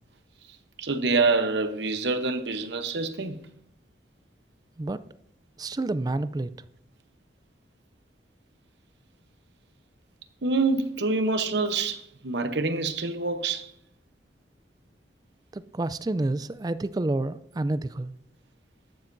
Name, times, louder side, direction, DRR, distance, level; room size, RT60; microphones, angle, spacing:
voice 1, 0.8-3.4 10.4-13.7, right 3 dB, 70° right, 0.9 m, -26 dB
voice 2, 5.6-6.5 15.5-18.1, right 2 dB, 20° right, 0.3 m, -29 dB
13.0 x 12.0 x 2.6 m
head